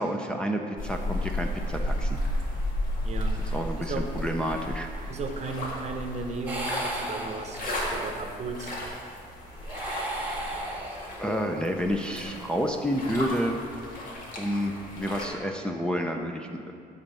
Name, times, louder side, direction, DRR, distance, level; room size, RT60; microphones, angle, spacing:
voice 1, 0.0-2.2 3.4-4.9 11.2-13.6 14.4-16.7, equal, 5° left, 1 dB, 0.5 m, -29 dB
sound 1, 0.8-15.3, left 1 dB, 55° left, 1.9 m, -34 dB
voice 2, 3.0-3.4 3.8-4.1 5.1-7.6 7.9-8.8, right 4 dB, 40° right, 5 dB, 0.8 m, -35 dB
sound 2, 6.5-7.9 9.5-11.4, right 1 dB, 10° right, 1.6 m, -35 dB
12.5 x 4.2 x 5.5 m, 2.2 s
cardioid pair, 110°, 17 cm